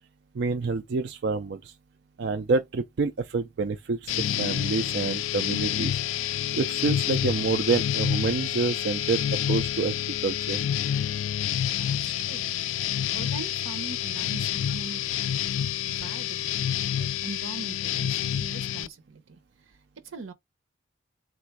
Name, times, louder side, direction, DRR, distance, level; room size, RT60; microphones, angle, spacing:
voice 1, 0.3-1.7 2.2-5.9 6.5-9.2 9.5-9.9 10.2-10.6, right 4 dB, 60° right, 0.4 m, -27 dB
sound 1, 4.1-18.9, left 10 dB, 75° left, 0.3 m, -28 dB
voice 2, 11.8-12.4 12.7-15.2 15.9-19.8 20.0-20.3, right 4 dB, 90° right, 0.9 m, -42 dB
3.8 x 2.5 x 4.6 m
head